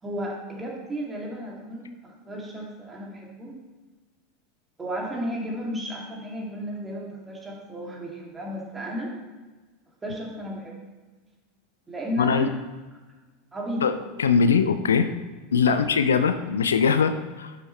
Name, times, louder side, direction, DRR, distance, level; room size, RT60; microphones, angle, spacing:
voice 1, 0.0-3.5 4.8-9.1 10.0-10.7 11.9-12.5 13.5-13.9 15.7-15.8, equal, 15° right, -2 dB, 2.5 m, -33 dB
voice 2, 12.2-12.5 13.8-15.1 15.5-17.6, left 6 dB, 75° left, 10 dB, 0.5 m, -21 dB
11.0 x 7.1 x 3.2 m, 1.3 s
figure-of-eight pair, 80°, 0 cm